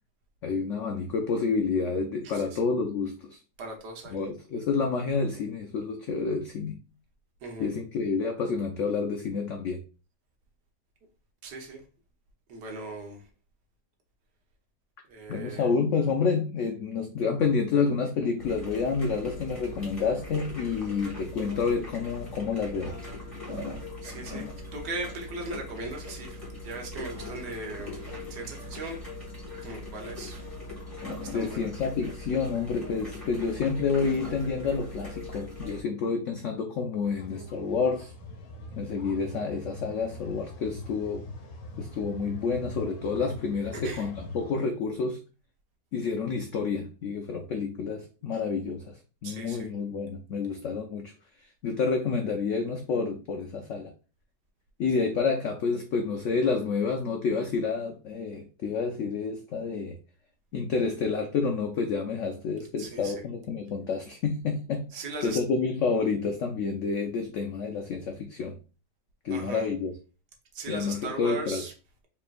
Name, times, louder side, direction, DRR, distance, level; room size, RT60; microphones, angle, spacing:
voice 1, 0.4-3.4 4.1-6.8 7.6-9.8 15.3-23.0 31.3-38.1 38.8-41.3 41.8-45.2 45.9-51.1 51.4-53.9 54.8-60.0 60.5-68.6 69.2-69.9 70.7-71.6, left 5 dB, 90° left, 0.6 m, -29 dB
voice 2, 2.2-2.6 3.6-4.2 7.4-7.7 11.4-11.8 12.5-13.2 15.1-15.8 24.0-29.0 29.6-30.4 31.2-31.7 43.8-44.1 48.3-48.4 49.2-49.7 62.8-63.2 64.9-65.4 69.3-69.7 70.5-71.7, right 3 dB, 75° right, 1.5 m, -38 dB
sound 1, 18.4-35.8, left 2 dB, 15° left, 1.4 m, -40 dB
sound 2, 37.0-44.5, left 2 dB, 65° left, 1.1 m, -42 dB
4.4 x 3.1 x 2.5 m
omnidirectional pair, 1.9 m